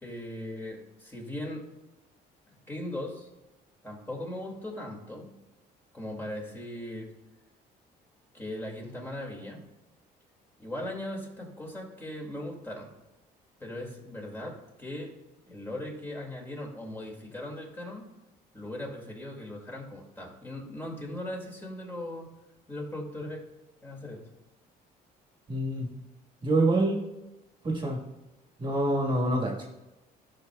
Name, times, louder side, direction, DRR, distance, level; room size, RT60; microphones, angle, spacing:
voice 1, 0.0-1.6 2.7-3.3 3.8-5.3 5.9-7.1 8.3-9.6 10.6-12.9 13.6-15.1 15.5-18.1 18.5-22.3 22.7-23.4 23.8-24.2, left 1 dB, 15° left, -2 dB, 2.2 m, -38 dB
voice 2, 25.5-25.9 26.4-27.0 27.6-28.0 28.6-29.6, right 2 dB, 25° right, 0 dB, 1.6 m, -26 dB
12.5 x 6.2 x 2.3 m, 1.0 s
cardioid pair, 110°, 17 cm